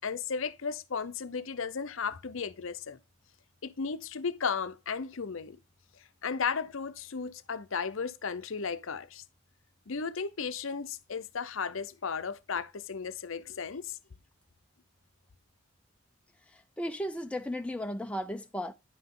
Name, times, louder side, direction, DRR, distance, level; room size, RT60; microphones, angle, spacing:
voice 1, 0.0-3.0 3.6-5.6 6.2-9.2 9.9-14.0, left 5 dB, 60° left, 0.6 m, -35 dB
voice 2, 16.5-18.7, equal, 5° left, 0.5 m, -35 dB
10.0 x 5.8 x 3.7 m
head